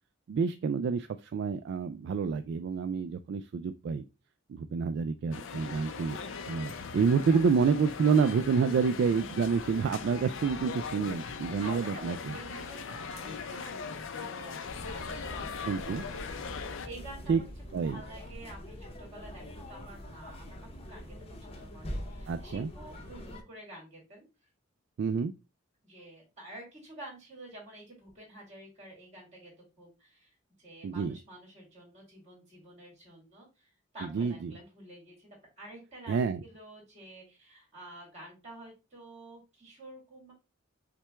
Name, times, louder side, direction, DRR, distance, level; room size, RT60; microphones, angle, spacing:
voice 1, 0.3-4.0 4.5-6.2 6.5-12.3 15.7-16.0 17.3-17.4 17.7-18.0 22.3-22.7 25.0-25.3 30.8-31.2 34.1-34.5 36.1-36.4, right 5 dB, 60° right, 9 dB, 0.3 m, -28 dB
sound 1, 5.3-16.9, left 5 dB, 70° left, 0.5 m, -40 dB
voice 2, 11.1-24.2 25.8-35.3 35.6-40.3, right 1 dB, 35° right, -1 dB, 2.6 m, -50 dB
sound 2, 14.6-23.4, equal, 30° left, 0.7 m, -44 dB
5.8 x 2.2 x 3.3 m, 0.28 s
head